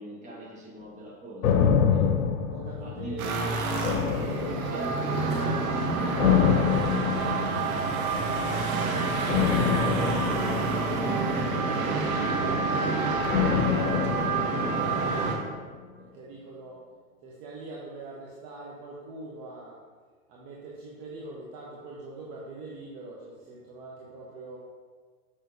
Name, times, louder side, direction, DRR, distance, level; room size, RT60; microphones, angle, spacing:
voice 1, 0.0-2.1 2.8-3.8 4.6-5.2, right 1 dB, 15° right, -5 dB, 1.5 m, -41 dB
sound 1, 1.4-3.3 3.8-5.1 6.2-7.9 9.3-11.7 13.3-15.5 15.7-15.8, left 7 dB, 80° left, 0.8 m, -26 dB
voice 2, 2.5-7.4 9.2-13.8 14.3-15.6 16.0-16.8 17.2-19.8 20.3-24.6, right 2 dB, 35° right, -4 dB, 1.0 m, -42 dB
sound 2, 3.0-7.5, left 1 dB, 10° left, 1.8 m, -41 dB
sound 3, 3.2-15.4, right 3 dB, 75° right, 1.2 m, -28 dB
6.6 x 5.6 x 2.7 m, 1.5 s
hypercardioid pair, 135°, 43 cm